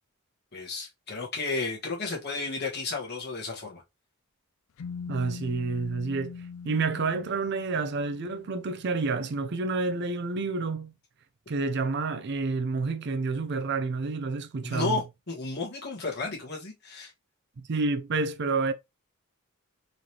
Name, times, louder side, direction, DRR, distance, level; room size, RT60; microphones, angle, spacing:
voice 1, 0.5-3.8 14.6-17.1, left 3 dB, 45° left, 1.4 m, -33 dB
sound 1, 4.8-8.6, left 6 dB, 70° left, 0.4 m, -42 dB
voice 2, 5.1-6.4 6.6-10.9 11.5-15.0 17.6-18.7, right 3 dB, 50° right, 0.4 m, -29 dB
3.8 x 3.2 x 2.8 m
head